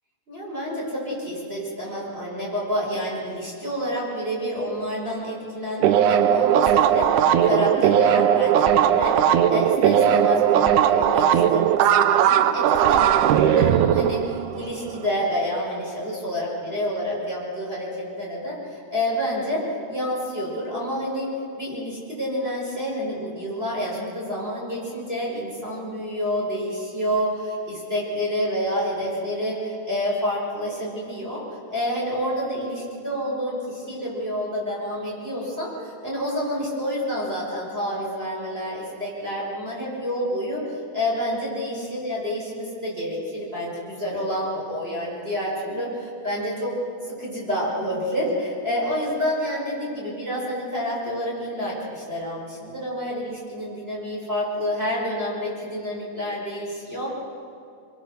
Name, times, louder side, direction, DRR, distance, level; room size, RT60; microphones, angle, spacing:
voice 1, 0.3-21.3 21.6-46.8 47.1-57.1, equal, 15° right, -5 dB, 5.3 m, -28 dB
sound 1, 5.8-15.0, right 10 dB, 75° right, 2.2 m, -18 dB
24.5 x 23.0 x 6.4 m, 2.6 s
omnidirectional pair, 3.7 m